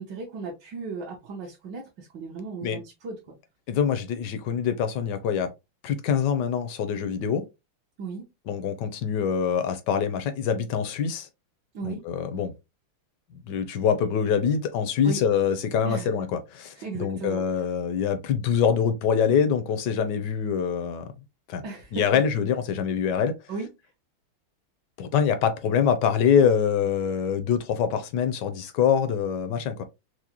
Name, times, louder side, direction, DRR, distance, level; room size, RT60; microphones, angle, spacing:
voice 1, 0.0-3.2 8.0-8.2 11.7-12.0 15.0-15.2 15.8-16.1 16.8-17.4 21.6-22.2 23.5-23.7, right 4 dB, 65° right, 1.4 m, -35 dB
voice 2, 3.7-5.5 5.8-7.4 8.5-11.3 11.8-12.5 13.5-21.1 21.5-21.7 21.9-23.3 25.0-29.8, left 7 dB, 70° left, 1.1 m, -24 dB
4.8 x 2.1 x 2.8 m
omnidirectional pair, 2.2 m